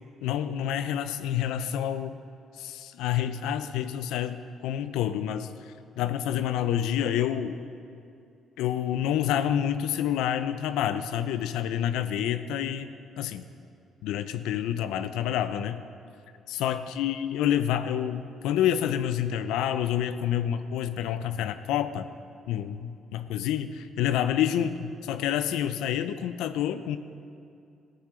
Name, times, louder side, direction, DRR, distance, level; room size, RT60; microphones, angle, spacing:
voice 1, 0.2-2.2 2.6-5.5 6.0-7.6 8.6-13.5 14.0-15.8 16.5-22.1 22.5-27.0, left 10 dB, 85° left, 11 dB, 0.5 m, -28 dB
14.0 x 9.4 x 5.0 m, 2.5 s
cardioid pair, 85°, 0 cm